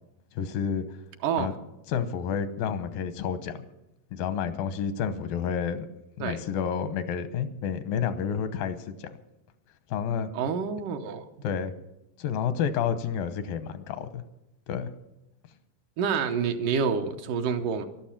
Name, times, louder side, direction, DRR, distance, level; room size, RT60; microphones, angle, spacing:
voice 1, 0.3-0.8 1.4-1.5 1.9-3.6 4.1-5.9 6.2-9.1 9.9-10.3 11.4-11.7 12.2-14.2 14.7-14.9, left 7 dB, 85° left, 11 dB, 2.7 m, -30 dB
voice 2, 1.2-1.5 6.2-6.4 10.3-11.3 16.0-17.9, right 6 dB, 75° right, 5 dB, 2.4 m, -28 dB
12.5 x 12.0 x 7.3 m, 0.91 s
omnidirectional pair, 4.0 m